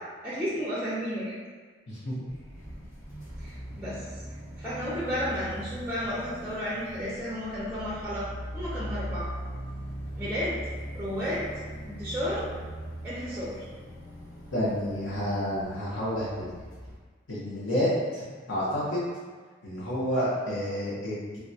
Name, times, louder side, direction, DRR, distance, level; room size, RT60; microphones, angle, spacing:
voice 1, 0.2-1.3 3.4-4.1 4.6-9.3 10.2-10.6 10.9-11.5 11.9-12.5 13.0-13.7, equal, 10° right, -8 dB, 0.5 m, -32 dB
sound 1, 2.3-16.9, right 1 dB, 40° left, 1.1 m, -40 dB
voice 2, 14.5-16.5 17.3-19.1 19.6-21.4, equal, 85° left, -9 dB, 0.8 m, -29 dB
3.4 x 2.2 x 2.6 m, 1.5 s
head